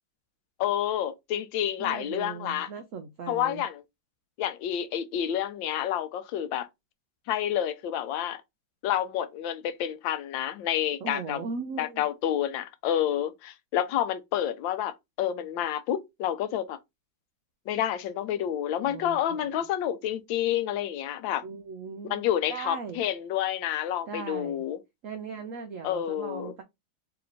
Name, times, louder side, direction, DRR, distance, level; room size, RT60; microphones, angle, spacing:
voice 1, 0.6-2.7 3.3-3.8 4.4-6.7 7.3-8.4 8.8-11.4 11.8-16.8 17.7-21.4 22.1-24.8 25.8-26.5, left 10 dB, 85° left, 1.3 m, -29 dB
voice 2, 1.8-3.6 11.0-12.1 18.9-19.5 21.4-23.0 24.1-24.6 25.0-26.6, right 5 dB, 90° right, 0.7 m, -38 dB
3.4 x 2.9 x 3.8 m
omnidirectional pair, 2.1 m